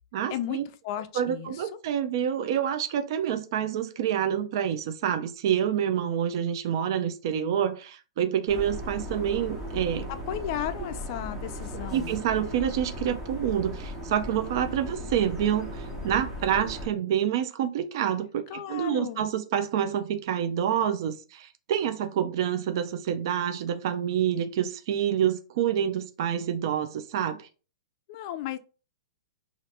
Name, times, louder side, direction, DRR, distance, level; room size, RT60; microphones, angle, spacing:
voice 1, 0.1-0.6 1.1-10.1 11.9-27.5, right 9 dB, 50° right, 0.4 m, -27 dB
voice 2, 0.8-1.7 10.1-12.2 18.5-19.2 28.1-28.6, left 11 dB, 40° left, 0.4 m, -34 dB
sound 1, 8.5-16.9, equal, 15° right, 0.9 m, -37 dB
2.7 x 2.5 x 3.3 m
hypercardioid pair, 155°, 3 cm